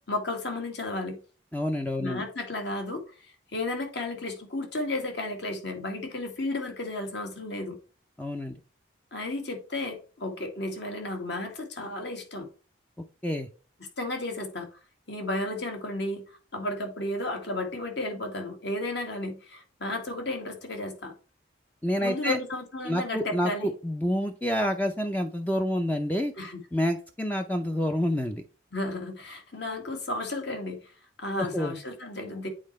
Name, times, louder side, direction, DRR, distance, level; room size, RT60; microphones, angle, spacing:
voice 1, 0.1-1.2 2.0-7.8 9.1-12.5 14.0-14.7 15.1-16.2 16.5-21.1 22.0-23.7 26.4-26.6 28.7-30.9 31.2-32.5, left 2 dB, 60° left, 1.9 m, -33 dB
voice 2, 1.5-2.2 8.2-8.6 13.2-13.5 21.8-22.4 22.8-26.3 26.7-28.4 31.4-31.7, equal, 10° left, 0.5 m, -28 dB
8.7 x 4.2 x 3.1 m
head